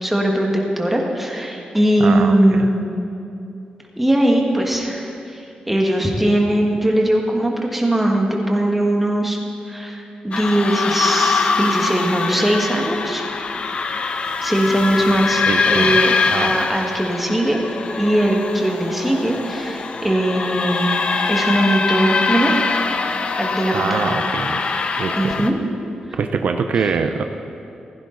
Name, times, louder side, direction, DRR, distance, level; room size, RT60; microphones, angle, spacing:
voice 1, 0.0-2.8 4.0-9.4 9.7-13.2 14.4-16.1 16.4-17.6 18.0-20.9 21.3-22.7 23.4-24.0 24.7-25.5 26.7-26.9, right 1 dB, 5° right, 0 dB, 1.5 m, -20 dB
voice 2, 2.0-2.7 15.5-16.6 23.7-24.6 25.0-25.5 26.1-27.2, right 5 dB, 60° right, 6 dB, 0.6 m, -24 dB
sound 1, 10.3-25.5, left 4 dB, 40° left, 0.7 m, -23 dB
15.5 x 15.0 x 3.9 m, 2.7 s
wide cardioid pair, 160°, 3 cm